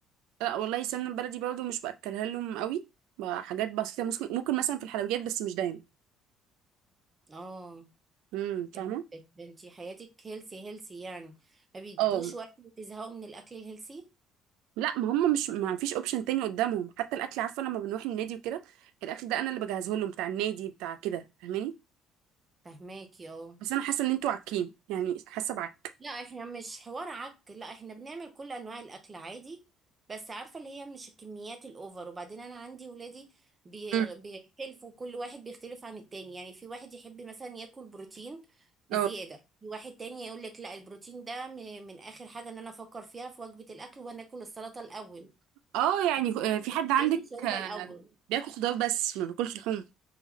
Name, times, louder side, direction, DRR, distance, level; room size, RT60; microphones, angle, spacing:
voice 1, 0.4-2.8 3.2-5.8 8.3-9.0 12.0-12.3 14.8-18.6 19.0-21.7 23.6-25.7 33.9-34.1 38.9-39.1 45.7-47.9 48.3-49.8, right 11 dB, 85° right, 0.3 m, -30 dB
voice 2, 7.3-7.9 8.7-14.1 22.6-23.6 26.0-29.6 30.1-33.3 33.6-38.5 38.9-45.3 46.5-46.7 47.0-48.1, right 3 dB, 15° right, 0.6 m, -43 dB
3.3 x 3.1 x 3.6 m
cardioid pair, 180°, 0 cm